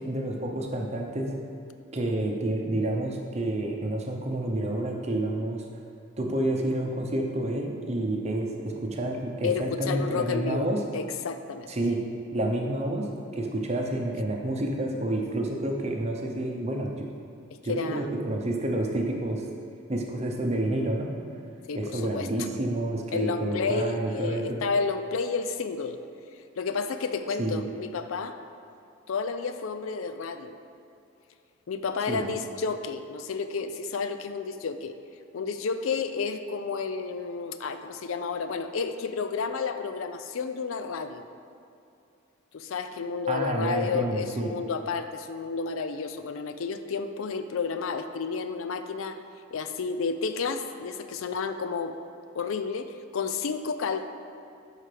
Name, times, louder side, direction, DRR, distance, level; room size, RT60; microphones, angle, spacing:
voice 1, 0.1-1.3 1.9-5.6 6.2-10.8 11.7-12.0 12.3-13.1 13.3-17.1 17.6-19.4 19.9-21.1 21.7-24.6 27.4-27.6 32.1-32.3 43.3-44.5, right 1 dB, 30° right, 1 dB, 0.7 m, -29 dB
voice 2, 9.4-10.7 10.9-11.7 17.7-18.1 21.7-22.5 23.1-26.0 26.6-28.4 29.1-30.6 31.7-35.0 35.3-41.2 42.5-49.2 49.5-52.0 52.3-54.1, left 5 dB, 75° left, 9 dB, 0.4 m, -31 dB
12.0 x 4.9 x 3.4 m, 2.5 s
head